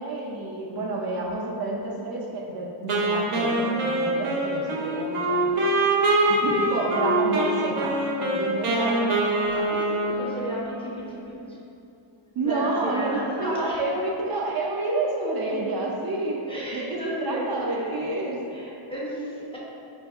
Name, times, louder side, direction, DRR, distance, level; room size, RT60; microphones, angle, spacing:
voice 1, 0.0-5.7 6.3-8.7 12.4-16.4 16.7-18.4, right 2 dB, 50° right, -3 dB, 0.5 m, -29 dB
Wind instrument woodwind instrument, 2.9-10.8, right 2 dB, 85° right, 0.7 m, -24 dB
voice 2, 8.6-11.6 12.4-13.8 16.5-18.0 18.5-19.6, equal, 10° left, -7 dB, 0.5 m, -33 dB
5.1 x 2.6 x 2.3 m, 2.7 s
wide cardioid pair, 130°, 50 cm